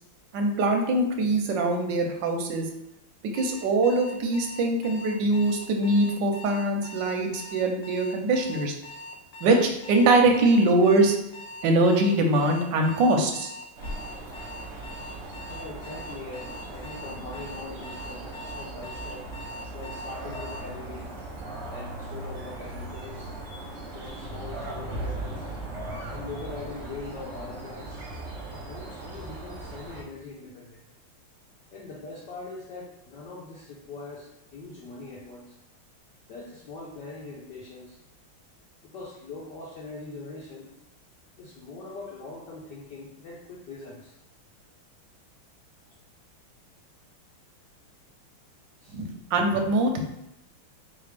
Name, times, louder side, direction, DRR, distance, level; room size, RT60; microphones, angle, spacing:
voice 1, 0.3-2.7 3.3-8.7 9.4-11.2 11.6-13.5 48.9-50.0, right 2 dB, 70° right, 4 dB, 1.1 m, -23 dB
Alarm, 3.3-20.6, left 1 dB, 85° left, 0.8 m, -42 dB
sound 1, 13.8-30.0, right 2 dB, 50° right, 0.8 m, -38 dB
voice 2, 15.5-19.3 19.7-21.2 21.7-23.4 23.9-25.5 26.1-28.0 28.5-30.8 31.7-35.6 36.3-38.0 38.8-40.7 41.4-44.2 48.8-49.0, left 3 dB, 65° left, -4 dB, 1.2 m, -42 dB
4.0 x 3.3 x 3.3 m, 0.88 s
omnidirectional pair, 2.3 m